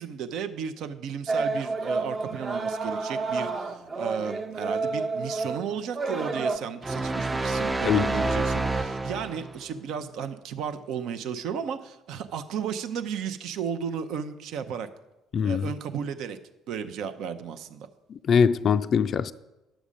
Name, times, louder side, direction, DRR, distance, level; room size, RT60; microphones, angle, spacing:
voice 1, 0.0-14.9 15.4-16.4 16.7-17.9, right 7 dB, 65° right, 0.6 m, -34 dB
sound 1, 1.3-6.6, right 3 dB, 40° right, 1.0 m, -30 dB
sound 2, 6.8-9.6, right 2 dB, 20° right, 0.5 m, -28 dB
voice 2, 15.3-15.7 18.1-19.3, left 7 dB, 50° left, 0.3 m, -22 dB
10.0 x 7.1 x 5.1 m
hypercardioid pair, 55°, 0 cm